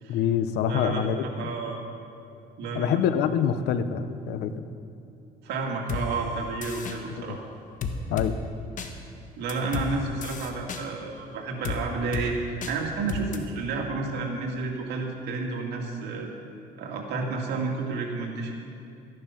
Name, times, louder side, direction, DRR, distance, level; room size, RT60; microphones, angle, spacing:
voice 1, 0.1-1.5 2.7-4.6 7.2-7.4 8.1-8.4, left 8 dB, 80° left, 11 dB, 0.8 m, -26 dB
voice 2, 0.7-1.8 2.6-3.0 5.4-7.4 9.4-12.4 12.7-16.3 16.8-18.5, right 3 dB, 80° right, 0 dB, 2.3 m, -31 dB
sound 1, 5.9-6.0 6.6-7.0 7.8-8.3 8.8-8.9 9.5-9.9 10.2-10.8 11.6-11.8 12.1-12.3 12.6-12.7 13.1-13.4, left 6 dB, 50° left, 1.2 m, -32 dB
14.0 x 10.5 x 5.8 m, 2.6 s
cardioid pair, 110°, 17 cm